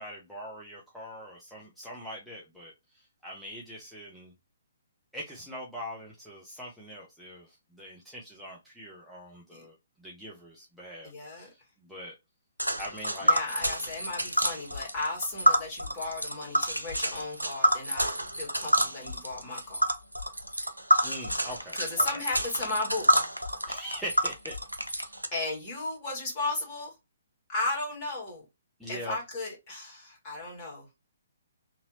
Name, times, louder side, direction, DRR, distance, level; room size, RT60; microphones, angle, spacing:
voice 1, 0.0-4.3 5.1-12.1 12.8-13.4 21.0-22.2 23.7-25.2 28.8-29.2, equal, ahead, 0.7 m, -43 dB
voice 2, 11.0-11.5 13.2-19.8 21.7-23.2 25.3-26.9 27.5-28.4 28.9-30.9, left 2 dB, 30° left, 1.8 m, -35 dB
Tick, 12.6-25.3, equal, 90° right, 0.5 m, -28 dB
3.0 x 2.7 x 2.6 m
figure-of-eight pair, 130°, 0 cm